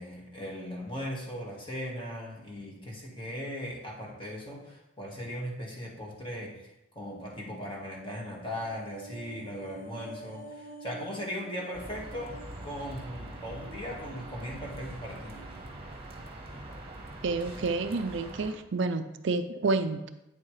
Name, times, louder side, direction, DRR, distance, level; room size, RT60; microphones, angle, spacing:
voice 1, 0.0-6.5 6.9-12.4 12.6-15.3, equal, 25° left, -2 dB, 1.7 m, -38 dB
sound 1, 8.0-16.5 16.8-16.9, right 2 dB, 75° left, 2.5 m, -50 dB
sound 2, 11.7-18.5, right 1 dB, 30° right, 1.1 m, -43 dB
voice 2, 17.2-20.1, right 3 dB, 60° right, 10 dB, 0.5 m, -29 dB
9.0 x 7.2 x 3.3 m, 0.91 s
head